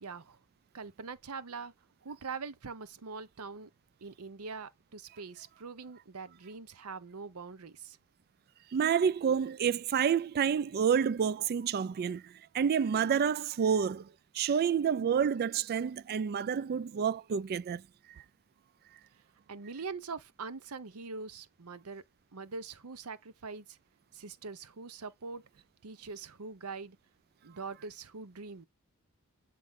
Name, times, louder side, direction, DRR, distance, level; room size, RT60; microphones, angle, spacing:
voice 1, 0.0-0.4 0.7-1.7 2.0-3.7 4.0-8.0 19.5-22.0 22.3-23.8 24.1-25.4 25.8-27.0 27.4-28.7, right 4 dB, 75° right, 0.8 m, -43 dB
voice 2, 8.7-14.1 14.3-17.8, right 7 dB, 45° right, 0.3 m, -29 dB
7.6 x 3.6 x 3.5 m
head